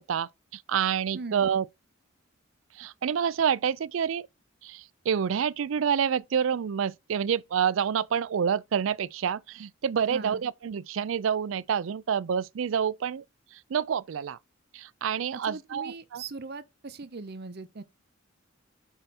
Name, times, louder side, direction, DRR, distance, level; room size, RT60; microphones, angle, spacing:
voice 1, 0.0-1.7 2.8-4.3 4.6-13.2 13.7-14.4 14.7-16.2, right 7 dB, 70° right, 0.4 m, -28 dB
voice 2, 1.1-1.6 10.1-10.4 15.3-17.8, right 3 dB, 50° right, 0.7 m, -40 dB
5.5 x 5.4 x 4.3 m
head